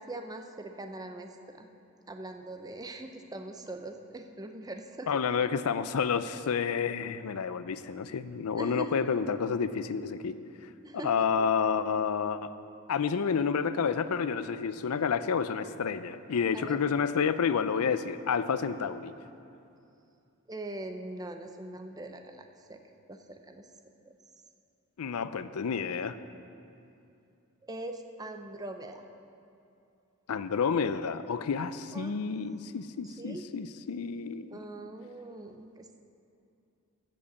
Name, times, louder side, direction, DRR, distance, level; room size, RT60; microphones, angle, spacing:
voice 1, 0.1-1.7 2.1-5.2 8.5-9.0 10.8-11.5 16.5-16.8 20.5-22.8 23.1-23.7 24.0-24.1 27.6-29.0 31.9-32.1 33.0-33.4 34.5-36.0, right 2 dB, 15° right, 5 dB, 0.6 m, -42 dB
voice 2, 5.1-10.4 11.0-12.5 12.9-19.2 25.0-26.2 30.3-34.6, left 6 dB, 90° left, 13 dB, 0.5 m, -30 dB
15.0 x 5.2 x 7.0 m, 2.6 s
head